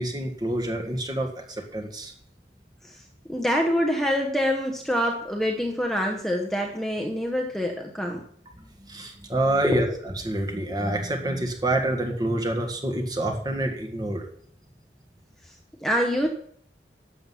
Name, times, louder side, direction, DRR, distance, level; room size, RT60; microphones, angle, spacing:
voice 1, 0.0-2.1 8.9-14.2, right 1 dB, 25° right, 2 dB, 1.7 m, -27 dB
voice 2, 3.3-8.2 9.6-10.0 15.8-16.3, equal, ahead, 1 dB, 1.0 m, -25 dB
12.0 x 7.9 x 5.7 m, 0.64 s
head